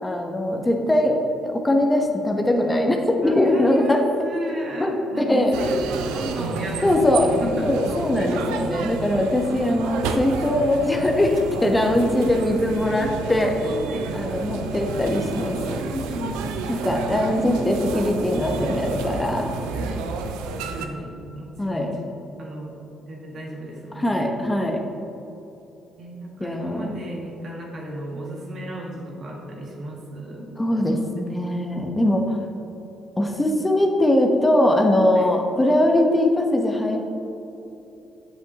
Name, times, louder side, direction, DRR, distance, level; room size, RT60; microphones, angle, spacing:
voice 1, 0.0-4.0 4.8-5.6 6.8-7.3 7.6-13.7 14.1-15.8 16.7-19.5 21.6-22.0 23.9-24.8 26.4-26.9 30.6-32.4 33.2-37.0, left 1 dB, 15° left, 2 dB, 1.0 m, -21 dB
voice 2, 3.2-7.7 8.1-8.2 13.6-14.1 15.8-17.1 19.7-20.1 20.5-21.9 22.4-22.7 23.0-24.3 26.0-30.5 35.1-35.3, equal, 55° right, -1 dB, 1.7 m, -34 dB
sound 1, 5.5-20.9, right 5 dB, 85° right, 0.5 m, -31 dB
7.9 x 7.5 x 2.9 m, 2.9 s
supercardioid pair, 60°, 0 cm